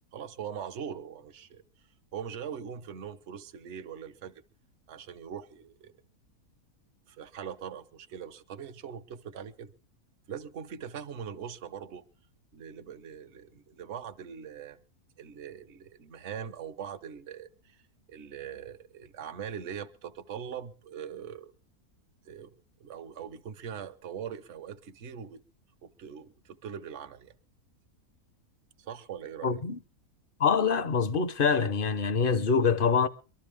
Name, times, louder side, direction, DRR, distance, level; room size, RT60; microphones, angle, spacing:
voice 1, 0.1-1.6 2.1-4.4 4.9-5.9 7.1-9.7 10.3-12.0 12.5-14.8 15.2-17.8 18.1-21.5 22.3-25.4 25.8-27.3 28.8-29.6, right 8 dB, 50° right, 1.2 m, -41 dB
voice 2, 29.4-29.8 30.4-33.1, left 5 dB, 40° left, 1.0 m, -25 dB
23.5 x 13.0 x 3.6 m
omnidirectional pair, 1.6 m